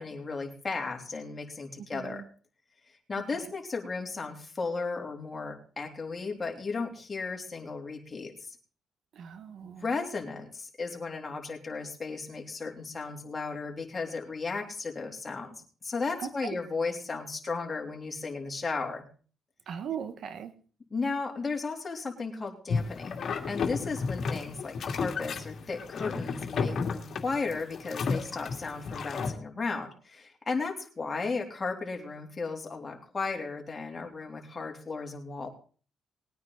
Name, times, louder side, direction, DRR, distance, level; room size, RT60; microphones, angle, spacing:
voice 1, 0.0-2.2 3.1-8.5 9.6-19.0 20.9-23.2 23.5-35.5, left 4 dB, 30° left, 1 dB, 3.2 m, -35 dB
voice 2, 1.8-2.3 3.3-3.5 9.1-9.9 16.2-16.5 19.7-20.5, right 8 dB, 65° right, 12 dB, 1.1 m, -39 dB
sound 1, 22.7-29.3, left 5 dB, 55° left, 2.3 m, -33 dB
20.5 x 9.4 x 4.0 m, 0.40 s
cardioid pair, 90°, 0 cm